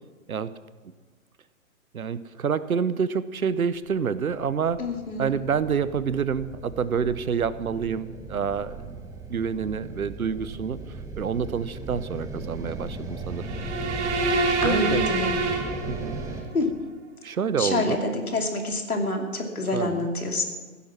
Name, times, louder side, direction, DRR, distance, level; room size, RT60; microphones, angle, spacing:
voice 1, 1.9-4.8 5.2-9.0 9.3-10.8 11.2-13.5 14.4-15.1 15.9-16.2 17.2-18.0 19.7-20.1, right 6 dB, 75° right, 16 dB, 0.9 m, -27 dB
sound 1, 3.9-16.4, right 2 dB, 5° right, 1.3 m, -37 dB
voice 2, 4.8-5.4 14.6-15.4 16.5-16.7 17.6-20.4, left 2 dB, 80° left, 3 dB, 2.9 m, -27 dB
sound 2, 13.4-16.4, right 3 dB, 50° right, 2.0 m, -26 dB
15.5 x 11.0 x 6.1 m, 1.4 s
figure-of-eight pair, 120°, 43 cm